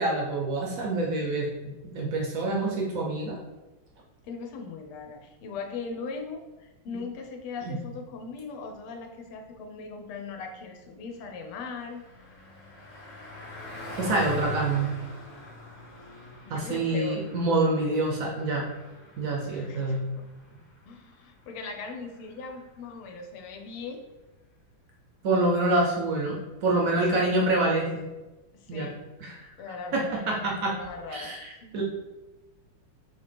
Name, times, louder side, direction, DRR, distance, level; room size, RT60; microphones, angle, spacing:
voice 1, 0.0-1.5 1.8-3.4 6.9-7.0 7.7-7.8 14.0-14.9 16.5-18.7 19.2-20.0 25.2-28.0 28.7-28.9 29.2-29.4 29.9-30.7 31.1-31.8, right 2 dB, 75° right, -2 dB, 0.7 m, -26 dB
voice 2, 4.2-12.0 16.4-17.2 19.4-20.3 20.9-24.0 26.9-27.4 28.5-29.0 29.6-31.7, left 4 dB, 85° left, 4 dB, 1.5 m, -39 dB
Car passing by, 11.0-22.8, left 2 dB, 55° left, 1.5 m, -43 dB
4.7 x 2.8 x 3.3 m, 1.1 s
omnidirectional pair, 2.3 m